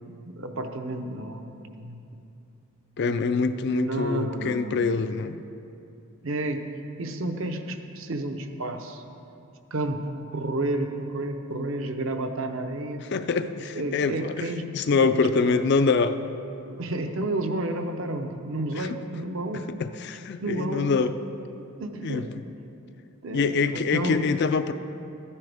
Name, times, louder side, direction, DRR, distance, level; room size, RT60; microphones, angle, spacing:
voice 1, 0.0-2.2 3.6-5.0 6.2-6.7 7.0-9.0 9.7-13.1 13.7-14.6 14.9-15.6 16.6-19.7 20.4-20.9 21.5-22.3 23.2-24.3, right 2 dB, 60° right, 5 dB, 0.7 m, -31 dB
voice 2, 3.0-5.4 13.1-16.2 18.8-19.0 19.5-21.1 22.0-22.2 23.3-24.7, left 4 dB, 50° left, 10 dB, 0.4 m, -25 dB
13.0 x 9.8 x 3.4 m, 2.7 s
head